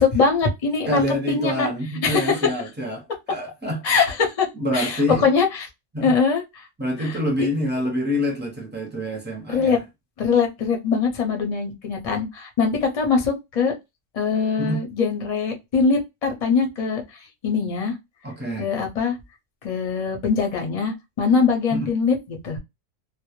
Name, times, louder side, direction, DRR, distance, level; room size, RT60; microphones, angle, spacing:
voice 1, 0.0-1.7 2.0-2.5 3.8-4.5 4.7-5.7 6.0-6.4 7.0-7.1 9.5-9.8 10.2-13.7 14.1-17.0 17.4-17.9 18.6-19.2 19.6-22.6, left 5 dB, 40° left, 0.6 m, -22 dB
voice 2, 0.9-3.9 4.6-5.3 5.9-6.1 6.8-9.8 14.6-14.8 18.2-18.7 21.7-21.9, left 1 dB, 15° right, 0.4 m, -26 dB
2.1 x 2.0 x 2.9 m
omnidirectional pair, 1.3 m